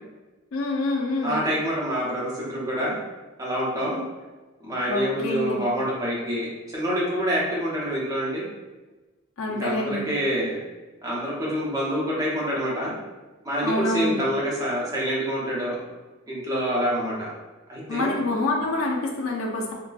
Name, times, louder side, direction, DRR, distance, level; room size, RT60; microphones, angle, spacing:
voice 1, 0.5-1.4 4.9-5.6 9.4-10.1 13.6-14.2 17.9-19.7, left 2 dB, 80° left, 0 dB, 0.6 m, -26 dB
voice 2, 1.2-2.9 3.4-4.0 4.6-8.5 9.5-10.6 11.0-12.9 13.4-15.8 16.3-17.3 17.7-18.2, equal, 15° right, -6 dB, 0.8 m, -26 dB
3.9 x 2.2 x 2.4 m, 1.2 s
head